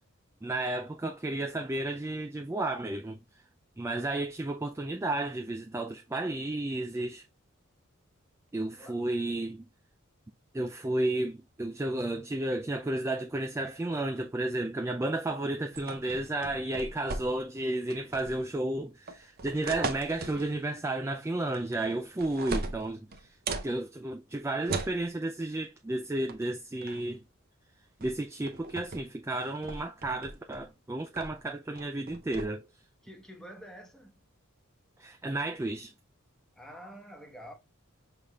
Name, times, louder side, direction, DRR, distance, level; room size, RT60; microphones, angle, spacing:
voice 1, 0.4-3.2 3.8-7.2 8.5-9.6 10.5-23.4 23.6-27.2 28.0-32.6 35.0-35.9, right 2 dB, 15° right, 0.3 m, -32 dB
sound 1, 15.7-17.6 17.9-18.5 19.1-20.5 21.5-21.9 22.2-23.7 24.7-25.0 26.3-26.5 26.8-27.1 28.0-28.2 28.5-29.0 29.4-30.6 31.2-31.4 31.8-32.5, right 3 dB, 45° right, 0.7 m, -37 dB
voice 2, 33.0-34.2 36.5-37.5, equal, 5° left, 1.0 m, -48 dB
5.7 x 3.4 x 2.3 m
head